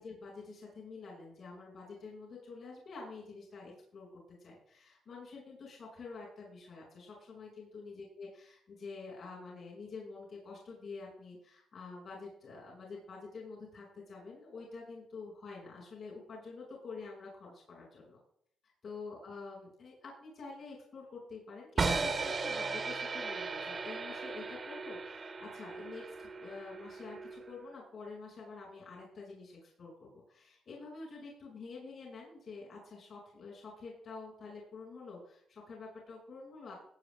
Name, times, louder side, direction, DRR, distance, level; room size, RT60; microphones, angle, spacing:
voice 1, 0.0-18.2 18.8-36.8, left 4 dB, 50° left, -2 dB, 6.6 m, -48 dB
sound 1, 21.8-27.8, right 4 dB, 35° right, 2.1 m, -37 dB
18.0 x 8.7 x 3.9 m, 0.66 s
cardioid pair, 90°, 0 cm